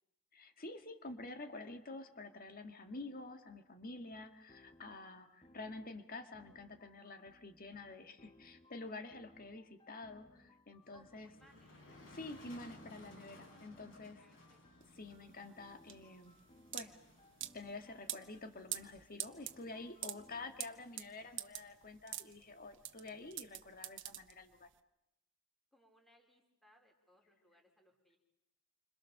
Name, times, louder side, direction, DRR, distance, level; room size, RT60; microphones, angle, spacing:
voice 1, 0.3-11.3 12.1-14.2 15.0-16.4 16.7-17.0 17.5-24.7, left 2 dB, 45° left, 7 dB, 2.1 m, -49 dB
sound 1, 4.1-20.8, left 1 dB, 25° left, 1.3 m, -65 dB
Motor vehicle (road), 10.8-23.5, left 1 dB, 65° left, 6.8 m, -62 dB
voice 2, 10.9-11.7 13.3-13.7 14.2-14.8 25.7-28.2, equal, ahead, 1 dB, 4.0 m, -68 dB
sound 2, 14.8-24.7, right 13 dB, 60° right, 1.3 m, -46 dB
29.0 x 26.0 x 6.7 m, 0.88 s
head